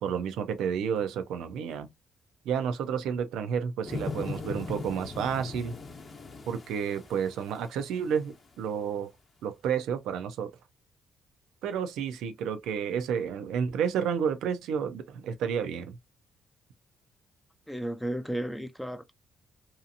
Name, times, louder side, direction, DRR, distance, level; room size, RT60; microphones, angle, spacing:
voice 1, 0.0-1.9 2.5-5.7 6.5-9.1 9.4-10.5 11.6-16.0, right 7 dB, 85° right, 0.4 m, -31 dB
sound 1, 3.9-7.9 8.4-8.5, left 3 dB, 40° left, 0.7 m, -39 dB
voice 2, 17.7-19.1, right 1 dB, 5° left, 0.3 m, -33 dB
2.7 x 2.4 x 2.6 m
cardioid pair, 90°, 0 cm